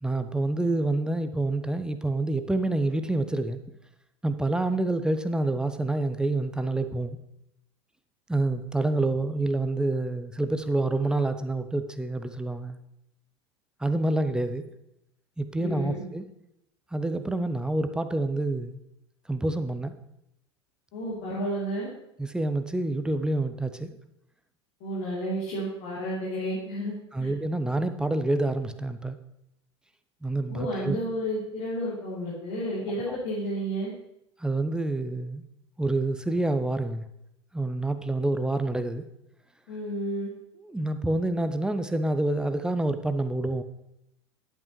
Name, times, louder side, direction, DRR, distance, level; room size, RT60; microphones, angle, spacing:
voice 1, 0.0-3.6 4.2-7.2 8.3-12.8 13.8-14.7 15.4-16.2 16.9-18.8 19.3-19.9 22.2-23.9 27.1-29.2 30.2-31.0 33.1-33.2 34.4-35.4 35.8-37.0 37.5-39.1 40.6-43.6, right 2 dB, 5° right, 10 dB, 0.7 m, -27 dB
voice 2, 15.6-16.0 20.9-21.9 24.8-27.3 30.5-33.9 39.7-40.3, equal, 55° left, -7 dB, 3.3 m, -31 dB
10.5 x 8.7 x 3.2 m, 0.81 s
figure-of-eight pair, 80°, 15 cm